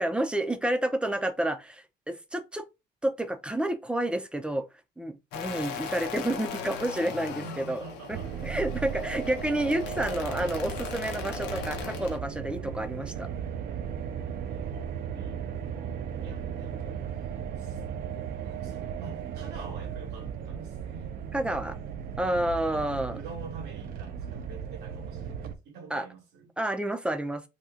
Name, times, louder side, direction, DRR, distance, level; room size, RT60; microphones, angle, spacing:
voice 1, 0.0-2.6 3.0-4.6 5.0-7.8 8.1-8.2 8.4-13.3 21.3-21.8 22.2-23.2 25.9-26.1 26.6-27.4, right 1 dB, 5° right, 0.5 m, -30 dB
sound 1, 5.3-12.2, left 6 dB, 85° left, 0.7 m, -38 dB
voice 2, 5.5-5.8 7.4-8.5 11.5-11.7 14.4-17.2 17.6-17.8 18.3-21.2 22.7-26.5, right 4 dB, 80° right, 1.3 m, -47 dB
sound 2, 8.1-25.6, right 8 dB, 60° right, 0.5 m, -36 dB
2.9 x 2.3 x 3.6 m
cardioid pair, 110°, 17 cm